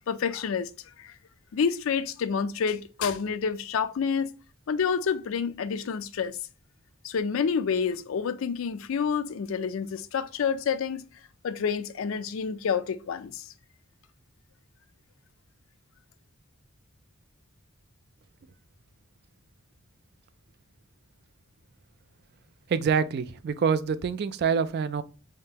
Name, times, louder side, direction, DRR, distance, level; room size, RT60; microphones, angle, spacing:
voice 1, 0.1-0.7 1.0-1.1 1.5-4.3 4.7-6.4 7.0-11.1 11.4-13.4, left 6 dB, 65° left, 0.4 m, -28 dB
voice 2, 22.7-25.0, right 6 dB, 50° right, 0.3 m, -26 dB
3.6 x 3.1 x 2.8 m
head